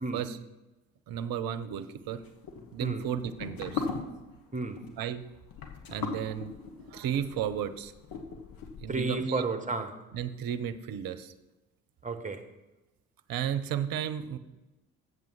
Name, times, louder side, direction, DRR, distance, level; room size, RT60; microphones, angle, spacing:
voice 1, 1.1-2.2 2.7-3.9 5.0-5.2 5.9-6.5 6.9-7.9 8.8-9.5 10.1-11.3 13.3-14.4, right 9 dB, 60° right, 0.8 m, -33 dB
sound 1, 2.1-9.1, left 4 dB, 55° left, 1.5 m, -39 dB
voice 2, 4.5-4.8 8.9-10.0 12.0-12.4, right 3 dB, 20° right, 1.2 m, -32 dB
7.9 x 7.6 x 5.6 m
hypercardioid pair, 50°, 41 cm